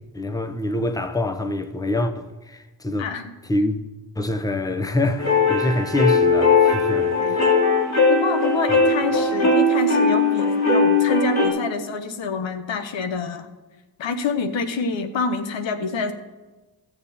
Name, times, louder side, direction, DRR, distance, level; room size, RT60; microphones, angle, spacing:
voice 1, 0.1-3.1 3.4-3.8 4.2-7.1, left 1 dB, 10° left, 0.9 m, -25 dB
voice 2, 3.0-3.3 7.2-7.4 8.1-13.5 14.0-16.1, left 5 dB, 85° left, 1.1 m, -27 dB
sound 1, 5.2-11.5, left 3 dB, 35° left, 3.4 m, -19 dB
16.0 x 7.1 x 4.3 m
cardioid pair, 65°, 44 cm